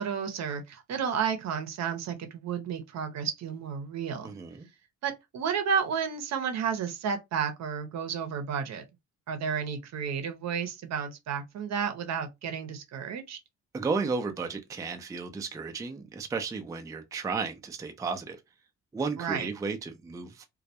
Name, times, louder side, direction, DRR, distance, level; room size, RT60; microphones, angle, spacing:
voice 1, 0.0-4.3 5.0-8.8 9.3-13.4 19.2-19.5, right 7 dB, 60° right, 0.7 m, -32 dB
voice 2, 4.2-4.7 13.7-18.4 18.9-20.5, right 4 dB, 10° right, 0.4 m, -33 dB
2.2 x 2.1 x 2.7 m
cardioid pair, 90°, 30 cm